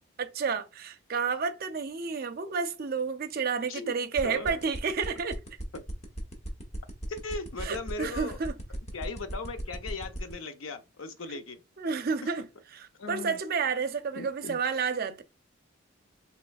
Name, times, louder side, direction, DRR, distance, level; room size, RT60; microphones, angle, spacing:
voice 1, 0.2-5.4 7.6-8.5 11.3-11.4 11.8-12.5 12.7-15.2, right 5 dB, 45° right, 0.5 m, -31 dB
voice 2, 4.2-4.6 5.7-5.8 7.1-8.4 8.9-11.6 13.0-13.4 14.2-14.6, left 3 dB, 80° left, 0.6 m, -38 dB
sound 1, 4.2-10.3, right 1 dB, 30° left, 0.9 m, -37 dB
4.2 x 3.0 x 2.3 m
head